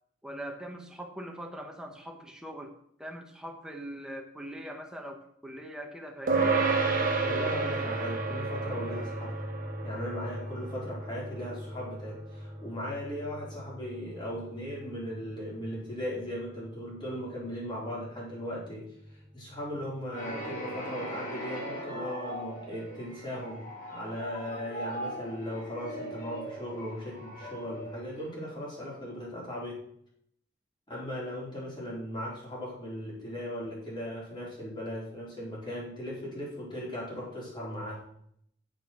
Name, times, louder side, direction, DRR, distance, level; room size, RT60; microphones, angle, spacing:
voice 1, 0.2-2.7 3.0-6.6, right 1 dB, 5° right, 1 dB, 1.5 m, -42 dB
sound 1, 6.3-16.0, right 3 dB, 45° right, 1.6 m, -32 dB
voice 2, 7.2-9.4 9.8-18.9 19.3-29.8 30.9-38.0, equal, 25° left, -5 dB, 4.3 m, -38 dB
sound 2, 20.1-28.9, right 1 dB, 45° left, 3.2 m, -40 dB
9.1 x 6.8 x 6.2 m, 0.69 s
head